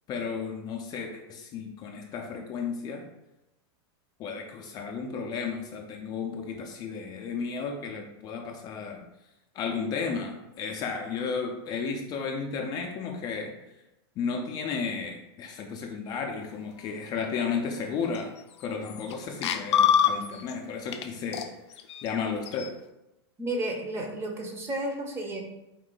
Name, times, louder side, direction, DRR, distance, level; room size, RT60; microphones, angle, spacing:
voice 1, 0.1-3.0 4.2-9.0 9.5-13.5 14.2-18.3 18.6-21.5 22.0-22.7, left 5 dB, 30° left, 2 dB, 0.4 m, -33 dB
sound 1, 18.1-18.2 18.6-19.1 19.4-20.5 20.9-21.1 21.3-22.7, left 9 dB, 85° left, 0.4 m, -26 dB
voice 2, 23.4-25.4, right 1 dB, 20° right, 2 dB, 0.6 m, -32 dB
4.4 x 2.6 x 3.8 m, 0.92 s
supercardioid pair, 145°, 14 cm